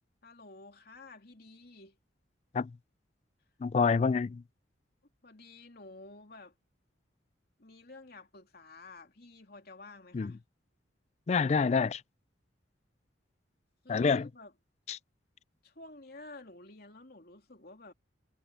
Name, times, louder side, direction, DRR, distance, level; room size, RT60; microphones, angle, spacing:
voice 1, 0.2-2.0 5.2-6.5 7.6-10.4 13.8-14.5 15.6-17.9, left 2 dB, 55° left, 3.1 m, -51 dB
voice 2, 3.6-4.4 10.1-10.3 11.3-12.0 13.9-14.3 14.9-15.0, left 5 dB, 35° left, 0.3 m, -27 dB
head